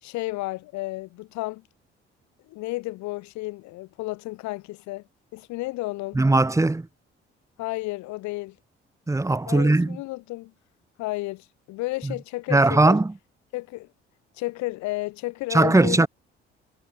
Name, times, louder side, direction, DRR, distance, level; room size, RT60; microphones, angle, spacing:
voice 1, 0.0-1.6 2.5-5.1 5.3-6.2 7.6-8.6 9.5-10.5 11.0-13.0 13.5-13.9 14.3-16.1, left 20 dB, 60° left, 1.2 m, -32 dB
voice 2, 6.1-6.9 9.1-10.0 12.0-12.1 12.5-13.1 15.5-16.1, right 2 dB, 10° right, 1.0 m, -19 dB
figure-of-eight pair, 45°, 32 cm